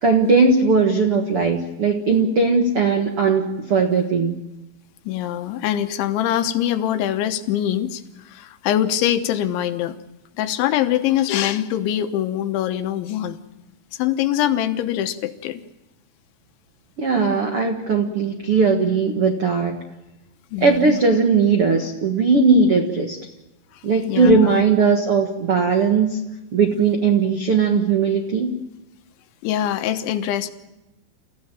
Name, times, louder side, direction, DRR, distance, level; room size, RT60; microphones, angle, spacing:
voice 1, 0.0-4.4 17.0-19.8 20.6-23.2 23.8-26.2 26.5-28.5, right 4 dB, 70° right, 3 dB, 1.3 m, -18 dB
voice 2, 5.1-10.0 10.4-13.4 13.9-15.6 20.5-21.0 24.1-24.6 29.4-30.5, left 11 dB, 85° left, 9 dB, 3.5 m, -23 dB
29.0 x 15.5 x 9.1 m, 1.0 s
omnidirectional pair, 5.2 m